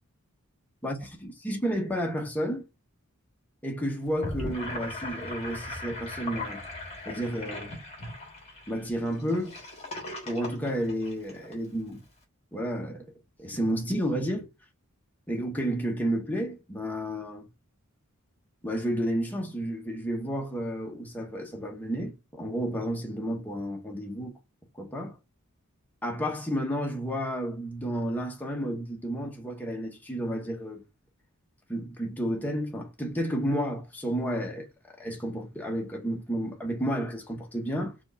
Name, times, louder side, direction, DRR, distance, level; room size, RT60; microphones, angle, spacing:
voice 1, 1.4-2.7 3.6-6.6 7.1-7.7 8.7-9.6 10.3-12.0 12.5-13.1 13.4-14.5 15.3-17.5 18.6-24.3 24.7-25.2 26.0-30.8 31.7-37.9, equal, 10° left, 0.7 m, -31 dB
Gurgling / Sink (filling or washing), 4.0-11.5, left 2 dB, 30° left, 1.5 m, -38 dB
4.3 x 2.4 x 3.9 m
head